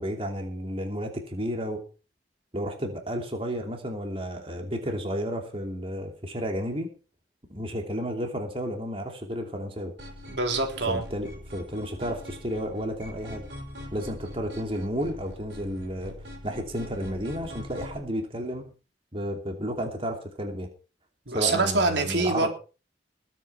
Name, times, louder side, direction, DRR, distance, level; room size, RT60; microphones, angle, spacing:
voice 1, 0.0-1.8 2.5-6.9 7.5-9.9 10.9-13.5 13.9-16.2 16.4-18.7 19.1-20.7 21.3-22.5, equal, 30° right, 3 dB, 2.9 m, -32 dB
sound 1, 10.0-18.0, equal, 70° right, 6.3 m, -42 dB
voice 2, 10.3-11.0 21.3-22.5, right 3 dB, 90° right, 4 dB, 3.6 m, -25 dB
20.5 x 9.3 x 4.6 m, 0.35 s
head